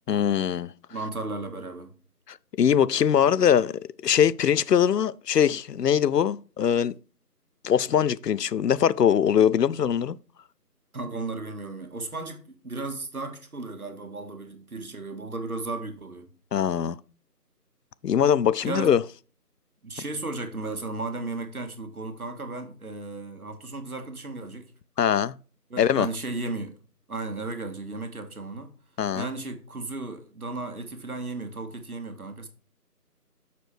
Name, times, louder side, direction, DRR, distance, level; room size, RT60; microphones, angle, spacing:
voice 1, 0.1-0.7 2.3-7.0 7.6-10.2 16.5-17.0 18.0-19.0 25.0-25.3 25.8-26.1 29.0-29.3, left 8 dB, 80° left, 0.5 m, -22 dB
voice 2, 0.9-1.9 10.9-16.3 18.6-18.9 19.8-24.7 25.7-26.7 27.1-28.7 29.1-32.5, right 3 dB, 65° right, 1.6 m, -35 dB
6.7 x 6.7 x 3.1 m
figure-of-eight pair, 175°, 48 cm